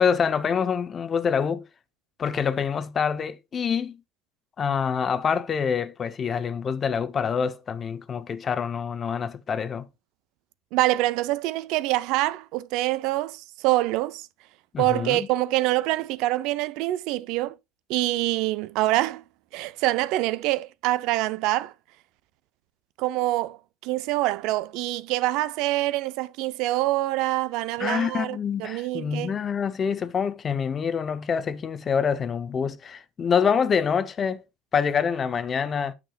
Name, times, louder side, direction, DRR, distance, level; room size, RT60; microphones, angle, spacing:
voice 1, 0.0-1.6 2.2-4.0 4.6-9.8 14.7-15.3 27.8-34.4 34.7-35.9, left 6 dB, 25° left, 0.6 m, -26 dB
voice 2, 10.7-14.3 14.8-17.5 17.9-19.2 19.5-21.7 23.0-23.6 23.8-29.3, right 17 dB, 65° right, 0.4 m, -25 dB
9.1 x 6.5 x 2.2 m
cardioid pair, 150°, 0 cm